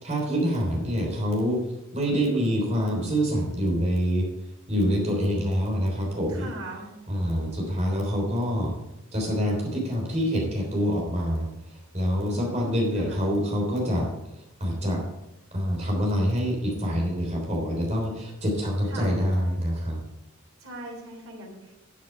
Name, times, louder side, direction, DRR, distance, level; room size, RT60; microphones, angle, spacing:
voice 1, 0.0-1.6 1.9-4.3 4.7-6.5 7.1-8.7 9.1-11.5 11.9-14.1 14.6-15.0 15.5-20.0, equal, 30° right, 0 dB, 3.5 m, -26 dB
voice 2, 2.1-2.5 6.3-6.9 12.2-13.3 18.9-19.2 20.6-21.7, right 1 dB, 75° right, 0 dB, 3.4 m, -41 dB
13.0 x 7.3 x 4.6 m, 0.90 s
head